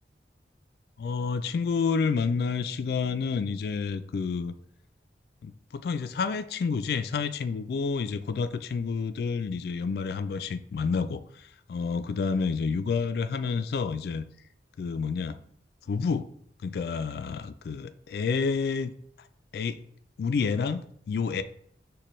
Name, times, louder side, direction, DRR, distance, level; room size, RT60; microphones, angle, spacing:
voice 1, 1.0-4.5 5.4-11.2 11.7-14.2 14.8-15.4 15.9-16.3 16.6-18.9 19.5-19.8 20.2-21.4, left 5 dB, 60° left, 11 dB, 0.3 m, -29 dB
6.6 x 2.2 x 3.0 m, 0.65 s
head